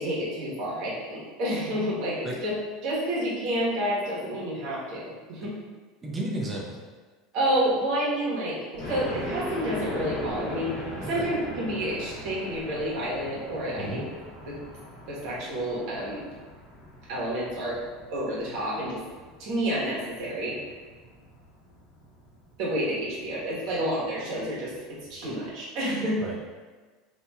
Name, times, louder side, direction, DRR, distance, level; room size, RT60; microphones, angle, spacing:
voice 1, 0.0-2.6 2.8-5.6 7.3-14.1 14.4-14.6 15.1-16.2 17.1-17.8 18.1-19.0 19.4-20.6 22.6-26.2, equal, 55° right, -6 dB, 1.3 m, -29 dB
voice 2, 6.0-6.8 11.0-11.3 13.8-14.0 26.2-26.5, right 1 dB, 15° right, -3 dB, 0.6 m, -33 dB
sound 1, 8.8-25.5, left 1 dB, 45° left, 1.1 m, -41 dB
4.1 x 2.8 x 2.4 m, 1.4 s
supercardioid pair, 155°, 0 cm